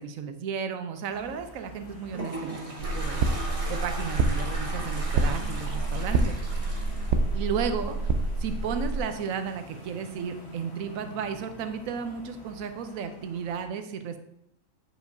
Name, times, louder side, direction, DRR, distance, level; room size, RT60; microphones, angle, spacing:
voice 1, 0.0-2.6 2.9-3.3 3.7-6.4 7.3-8.1 8.4-14.2, right 6 dB, 90° right, 8 dB, 1.0 m, -33 dB
sound 1, 1.1-13.7, left 1 dB, 55° left, 1.4 m, -46 dB
Toilet flush, 1.8-8.1, right 1 dB, 30° right, 0.9 m, -39 dB
sound 2, 2.8-9.0, right 3 dB, 65° right, 0.8 m, -27 dB
7.9 x 4.9 x 2.6 m, 0.81 s
omnidirectional pair, 1.4 m